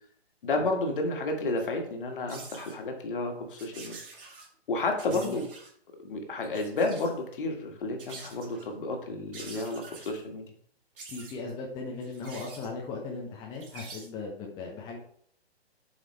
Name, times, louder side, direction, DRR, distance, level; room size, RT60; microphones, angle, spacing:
voice 1, 0.4-4.3 4.7-5.5 6.0-10.4, left 2 dB, 55° left, 3 dB, 1.8 m, -31 dB
sound 1, 1.6-1.7 2.3-2.7 3.6-4.5 5.0-5.7 6.4-7.2 8.0-8.7 9.3-10.2 11.0-11.4 12.0-12.7 13.5-14.1, right 3 dB, 55° right, 2.2 m, -46 dB
voice 2, 5.1-5.4 11.1-15.0, left 4 dB, 15° left, -1 dB, 0.7 m, -38 dB
7.6 x 4.9 x 3.3 m, 0.63 s
figure-of-eight pair, 130°, 32 cm